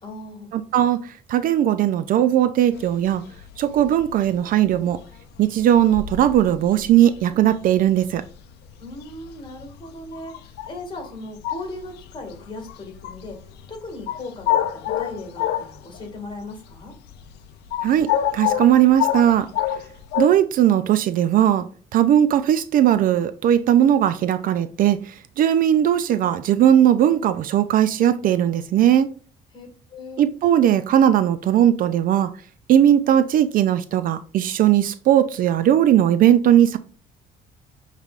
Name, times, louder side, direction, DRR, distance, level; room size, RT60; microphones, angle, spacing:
voice 1, 0.0-0.5 8.8-13.4 13.7-16.9 29.5-30.2, left 2 dB, 25° left, 1.9 m, -37 dB
voice 2, 0.5-3.2 3.6-5.0 5.4-8.2 17.8-19.5 20.2-21.7 21.9-29.1 30.2-32.3 32.7-36.8, right 11 dB, 55° right, 0.4 m, -18 dB
sound 1, 2.7-16.2 16.5-20.3, left 11 dB, 80° left, 0.5 m, -28 dB
6.5 x 3.2 x 2.4 m
cardioid pair, 110°, 17 cm